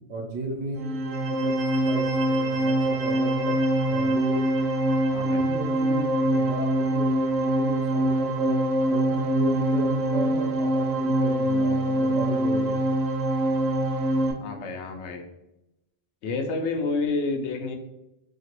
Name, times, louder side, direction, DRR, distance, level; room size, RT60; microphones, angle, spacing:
voice 1, 0.1-3.6 3.9-4.7 5.2-8.6 8.9-12.8, right 2 dB, 90° right, -1 dB, 1.1 m, -34 dB
sound 1, 0.7-14.3, right 1 dB, 75° right, 0.8 m, -24 dB
voice 2, 14.4-15.2 16.2-17.8, left 3 dB, 80° left, 5 dB, 0.9 m, -29 dB
2.9 x 2.8 x 2.9 m, 0.90 s
omnidirectional pair, 1.1 m